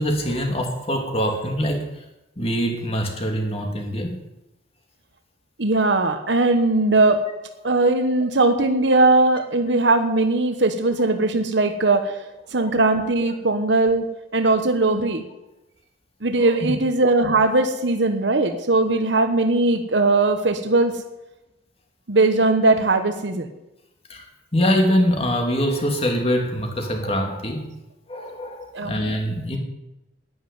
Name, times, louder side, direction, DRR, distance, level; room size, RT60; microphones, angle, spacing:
voice 1, 0.0-2.0 2.4-4.1 16.4-16.7 24.1-24.3 24.5-27.7 28.1-29.6, equal, 30° left, 3 dB, 2.6 m, -24 dB
voice 2, 5.6-7.2 7.6-12.2 12.5-14.1 14.3-15.2 16.2-21.0 22.1-23.5 28.7-29.1, right 2 dB, 70° right, 7 dB, 1.3 m, -19 dB
11.0 x 10.0 x 10.0 m, 0.96 s
head